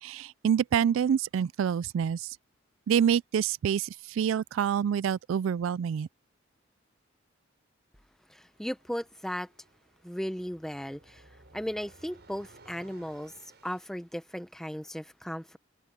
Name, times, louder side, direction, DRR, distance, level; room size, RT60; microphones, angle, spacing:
voice 1, 0.0-2.3 2.9-6.1, right 8 dB, 80° right, 0.3 m, -27 dB
voice 2, 8.3-9.5 10.0-15.6, equal, ahead, 0.7 m, -36 dB
sound 1, 8.6-14.0, right 2 dB, 55° right, 7.0 m, -58 dB
open air
head